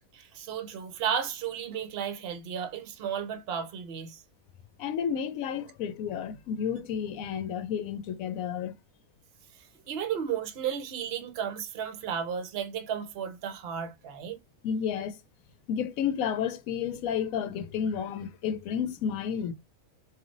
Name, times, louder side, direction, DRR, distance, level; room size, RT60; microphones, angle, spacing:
voice 1, 0.1-4.2 9.5-14.4, right 8 dB, 50° right, 0.8 m, -34 dB
voice 2, 4.8-8.7 14.6-15.2 15.7-19.5, left 8 dB, 70° left, 1.0 m, -31 dB
3.3 x 2.6 x 3.8 m
omnidirectional pair, 1.6 m